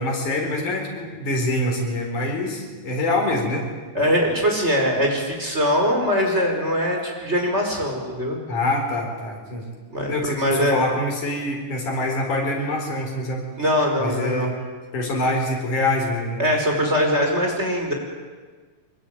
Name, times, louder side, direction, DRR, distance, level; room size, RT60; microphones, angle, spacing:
voice 1, 0.0-3.7 8.5-9.7 10.1-13.5 14.0-14.6 14.9-16.4, left 1 dB, 80° left, 2 dB, 5.8 m, -25 dB
voice 2, 3.9-8.4 9.9-10.9 13.6-14.5 16.4-17.9, equal, 20° right, 0 dB, 5.4 m, -22 dB
25.0 x 21.5 x 9.3 m, 1.4 s
omnidirectional pair, 3.4 m